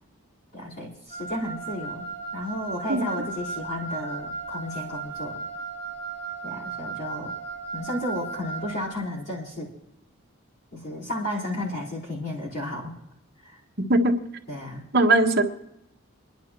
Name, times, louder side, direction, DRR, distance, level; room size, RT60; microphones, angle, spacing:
voice 1, 0.5-2.1 2.3-5.4 6.4-7.3 7.7-9.7 10.7-13.0 13.4-13.6 14.5-14.8, left 1 dB, 50° left, -8 dB, 4.3 m, -33 dB
Wind instrument woodwind instrument, 1.1-8.9, right 3 dB, 35° left, 7.4 m, -35 dB
voice 2, 13.8-14.1 14.9-15.4, right 2 dB, 45° right, 2 dB, 1.4 m, -19 dB
27.5 x 11.0 x 3.1 m, 0.82 s
head